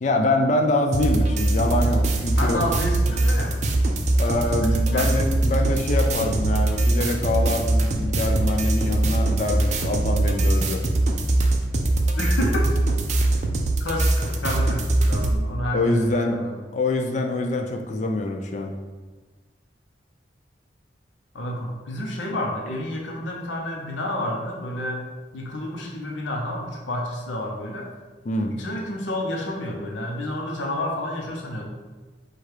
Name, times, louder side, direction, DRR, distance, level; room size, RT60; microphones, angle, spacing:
voice 1, 0.0-2.6 4.2-10.8 15.7-16.4 16.7-18.7 28.3-28.5, left 2 dB, 40° left, 3 dB, 0.4 m, -25 dB
sound 1, 0.9-15.3, right 2 dB, 40° right, 0.4 m, -22 dB
voice 2, 2.4-3.6 4.6-5.1 12.2-12.7 13.8-14.1 14.4-16.6 21.3-25.0 25.3-27.9 28.5-31.7, left 1 dB, 85° left, -1 dB, 0.7 m, -29 dB
4.8 x 2.3 x 4.5 m, 1.3 s
head